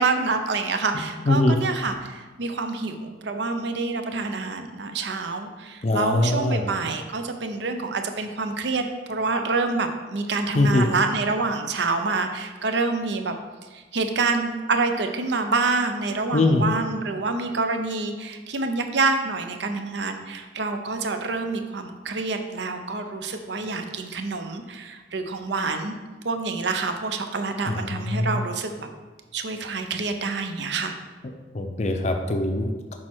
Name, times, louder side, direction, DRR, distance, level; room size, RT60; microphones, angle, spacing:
voice 1, 0.0-13.4 13.7-25.9 26.2-28.9 29.3-31.0, right 3 dB, 70° right, 6 dB, 0.6 m, -27 dB
voice 2, 1.3-1.6 5.8-6.6 10.5-10.9 16.3-16.6 27.7-28.4 31.5-33.0, left 2 dB, 40° left, 4 dB, 0.5 m, -22 dB
6.3 x 4.2 x 4.5 m, 1.3 s
head